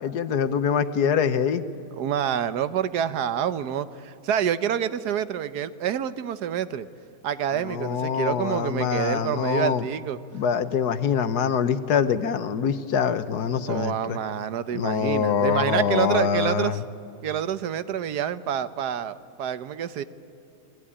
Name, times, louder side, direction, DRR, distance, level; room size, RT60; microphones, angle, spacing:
voice 1, 0.0-1.6 7.6-9.8 10.3-14.2 14.7-16.8, left 7 dB, 70° left, 12 dB, 1.5 m, -24 dB
voice 2, 2.0-6.9 7.2-10.2 13.7-16.7 17.2-20.0, right 9 dB, 70° right, 13 dB, 1.4 m, -27 dB
29.0 x 20.5 x 9.9 m, 2.6 s
omnidirectional pair, 1.8 m